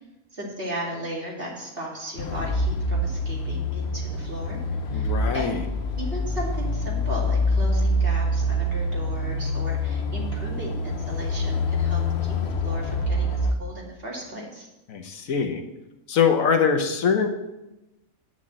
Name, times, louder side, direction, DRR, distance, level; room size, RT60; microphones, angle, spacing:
voice 1, 0.3-4.6 4.9-5.6 6.0-14.7, right 1 dB, 40° right, -2 dB, 2.6 m, -36 dB
sound 1, 2.2-13.5, left 1 dB, 55° left, 1.0 m, -26 dB
voice 2, 4.9-5.6 14.9-15.6 16.1-17.3, left 6 dB, 70° left, 5 dB, 1.3 m, -23 dB
9.2 x 6.2 x 7.5 m, 0.97 s
omnidirectional pair, 1.5 m